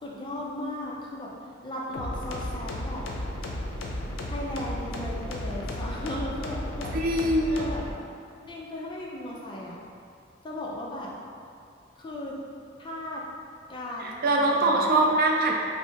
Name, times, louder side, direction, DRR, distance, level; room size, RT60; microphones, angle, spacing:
voice 1, 0.0-1.3 1.6-3.0 4.3-6.9 7.5-7.8 8.5-9.8 10.4-11.1 12.0-12.4 12.8-13.2 13.7-14.9, left 1 dB, 25° left, -4 dB, 0.4 m, -36 dB
sound 1, 1.9-7.9, left 1 dB, 80° left, 0.4 m, -34 dB
voice 2, 6.9-7.7 14.0-15.5, right 2 dB, 50° right, 0 dB, 0.3 m, -23 dB
3.3 x 2.7 x 2.8 m, 2.4 s
head